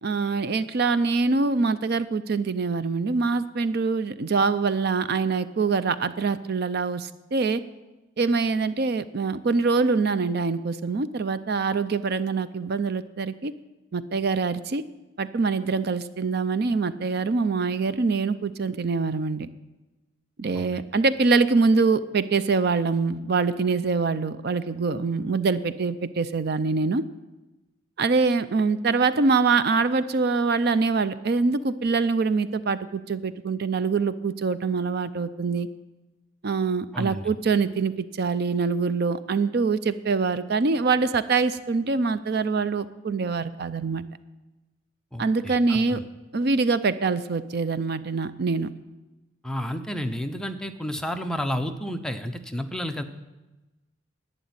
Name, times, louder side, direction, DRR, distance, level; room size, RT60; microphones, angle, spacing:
voice 1, 0.0-7.6 8.2-13.5 13.9-14.8 15.2-19.5 20.4-27.0 28.0-35.7 36.4-44.0 45.2-46.0 46.3-48.7, right 4 dB, 50° right, 14 dB, 0.5 m, -24 dB
voice 2, 36.9-37.3 45.1-46.0 49.4-53.0, equal, 5° left, 5 dB, 0.7 m, -31 dB
11.5 x 9.2 x 9.4 m, 1.1 s
head